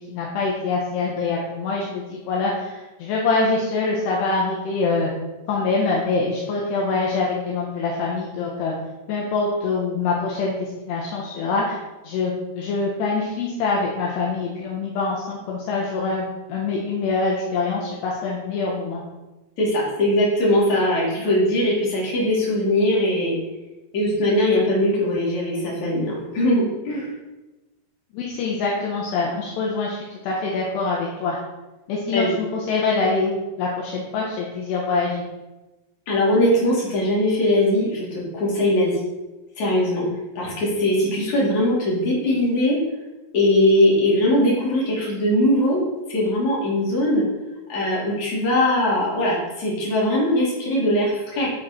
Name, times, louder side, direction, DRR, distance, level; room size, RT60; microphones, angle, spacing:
voice 1, 0.1-5.1 5.5-8.7 9.1-11.8 12.0-19.0 28.1-31.4 31.9-35.2, left 3 dB, 70° left, -3 dB, 3.2 m, -24 dB
voice 2, 19.6-23.4 23.9-27.1 32.1-32.3 36.1-39.0 39.6-40.1 40.4-42.8 43.3-45.8 46.1-47.3 47.7-51.5, left 1 dB, 40° left, -6 dB, 4.3 m, -20 dB
9.8 x 8.4 x 4.4 m, 1.1 s
omnidirectional pair, 5.2 m